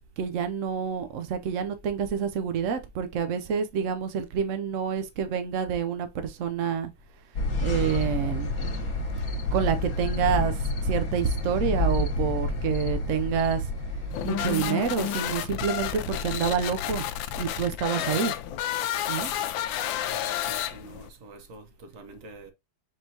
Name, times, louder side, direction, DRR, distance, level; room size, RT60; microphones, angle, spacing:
voice 1, 0.2-6.9 7.6-8.6 9.5-13.7 14.2-17.0 17.3-18.3 19.1-19.3, right 7 dB, 80° right, 0.6 m, -28 dB
sound 1, 7.3-14.6, left 2 dB, 50° left, 1.5 m, -29 dB
sound 2, 14.1-21.1, left 11 dB, 80° left, 1.3 m, -31 dB
voice 2, 18.0-18.3 19.2-19.4 20.1-22.5, right 3 dB, 55° right, 1.1 m, -45 dB
5.2 x 3.8 x 2.7 m
omnidirectional pair, 2.1 m